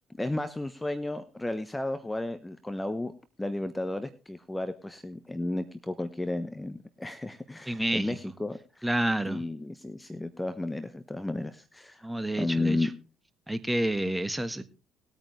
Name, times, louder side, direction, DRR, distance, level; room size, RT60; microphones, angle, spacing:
voice 1, 0.2-3.1 3.4-8.8 9.3-12.1 12.4-12.9, left 2 dB, 10° left, 12 dB, 1.1 m, -33 dB
voice 2, 7.7-8.2 8.8-9.4 12.0-12.9 13.5-14.6, right 1 dB, 10° right, 11 dB, 1.5 m, -29 dB
19.5 x 9.0 x 3.3 m, 0.33 s
figure-of-eight pair, 50°, 0 cm